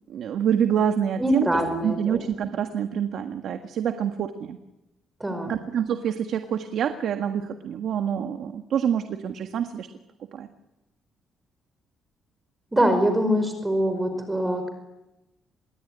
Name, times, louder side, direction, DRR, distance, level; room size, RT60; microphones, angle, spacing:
voice 1, 0.1-1.5 1.8-4.6 5.5-9.9 10.3-10.5, right 8 dB, 70° right, 7 dB, 1.6 m, -26 dB
voice 2, 1.2-2.2 5.2-5.6 12.7-14.7, equal, 15° right, 8 dB, 5.2 m, -23 dB
27.0 x 22.0 x 9.9 m, 0.97 s
cardioid pair, 90°, 0 cm